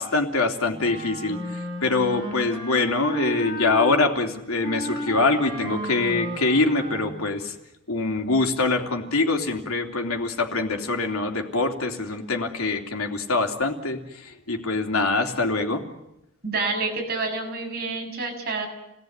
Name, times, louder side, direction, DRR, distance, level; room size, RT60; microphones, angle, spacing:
voice 1, 0.0-1.4 1.8-7.5 7.9-15.8, left 3 dB, 90° left, 4 dB, 3.3 m, -24 dB
Wind instrument woodwind instrument, 0.7-3.9 4.6-7.4, right 1 dB, 20° right, 6.4 m, -33 dB
voice 2, 16.4-18.7, right 3 dB, 45° right, 1 dB, 7.1 m, -28 dB
29.0 x 19.0 x 9.6 m, 0.88 s
head